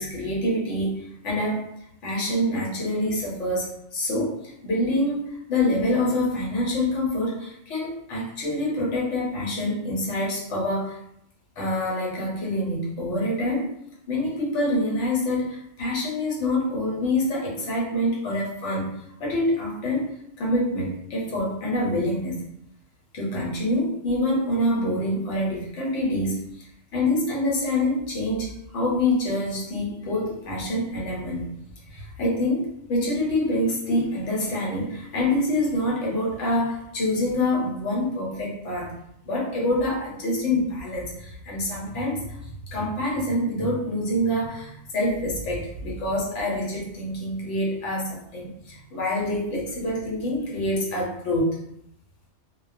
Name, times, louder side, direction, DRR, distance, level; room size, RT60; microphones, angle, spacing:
voice 1, 0.0-1.7 2.0-11.0 11.6-13.7 14.1-18.9 19.2-20.1 20.4-22.4 23.1-26.6 26.9-31.5 31.9-38.9 39.2-51.6, left 1 dB, 70° left, -3 dB, 1.1 m, -26 dB
2.3 x 2.2 x 2.5 m, 0.75 s
omnidirectional pair, 1.3 m